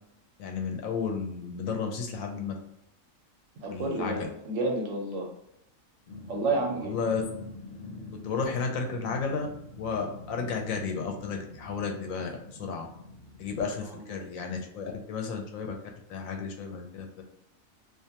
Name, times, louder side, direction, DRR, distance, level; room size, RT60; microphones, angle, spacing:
voice 1, 0.4-2.6 3.7-4.3 6.8-7.2 8.2-9.5 9.8-12.3 12.6-12.9 13.4-15.8 16.1-17.1, left 5 dB, 80° left, 3 dB, 1.0 m, -32 dB
voice 2, 3.6-5.3 6.3-7.0, right 2 dB, 70° right, 1 dB, 1.0 m, -30 dB
Growling, 6.1-13.8, left 2 dB, 50° left, 0.7 m, -45 dB
2.5 x 2.3 x 2.8 m, 0.79 s
omnidirectional pair, 1.4 m